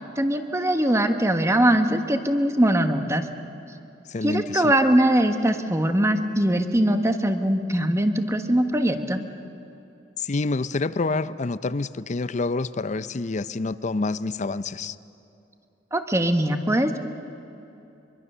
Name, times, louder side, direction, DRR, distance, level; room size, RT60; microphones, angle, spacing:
voice 1, 0.0-3.3 4.2-9.2 15.9-17.0, right 1 dB, 15° right, 7 dB, 1.3 m, -21 dB
voice 2, 4.1-4.7 10.2-15.0, left 3 dB, 40° left, 15 dB, 0.6 m, -27 dB
24.5 x 23.5 x 6.8 m, 2.7 s
head